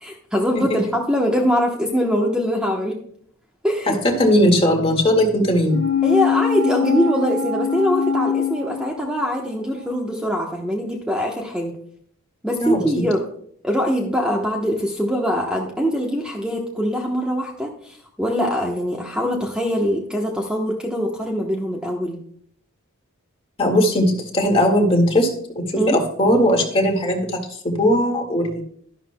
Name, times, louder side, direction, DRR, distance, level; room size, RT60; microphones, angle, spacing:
voice 1, 0.0-2.9 3.6-4.0 6.0-11.8 12.4-13.2 13.6-22.2 25.8-26.0, equal, 5° right, 0 dB, 1.0 m, -23 dB
voice 2, 4.2-5.8 12.6-12.9 23.6-25.3 25.5-27.4 27.6-28.6, equal, 25° left, 2 dB, 2.0 m, -18 dB
sound 1, 5.7-9.5 9.8-9.9, left 6 dB, 80° left, 1.2 m, -23 dB
12.5 x 11.5 x 2.2 m, 0.62 s
head